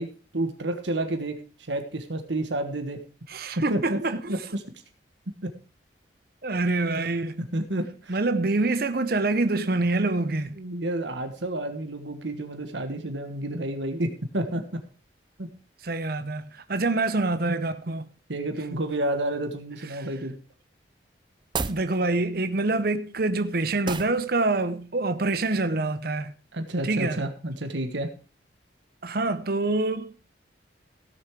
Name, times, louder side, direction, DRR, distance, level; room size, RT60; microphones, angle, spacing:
voice 1, 0.0-3.0 3.7-4.0 4.3-4.6 5.4-5.5 6.5-6.6 7.4-8.2 10.6-14.6 15.4-15.5 18.3-20.3 26.5-28.1, right 1 dB, 75° right, 1.4 m, -30 dB
voice 2, 3.3-4.4 6.4-7.4 8.1-10.5 15.8-18.1 20.0-20.1 21.7-26.3 26.8-27.2 29.0-30.1, right 2 dB, 50° right, 0.8 m, -26 dB
sound 1, 21.4-21.9 23.8-24.2, right 4 dB, 25° right, 0.5 m, -30 dB
16.0 x 7.2 x 4.7 m
head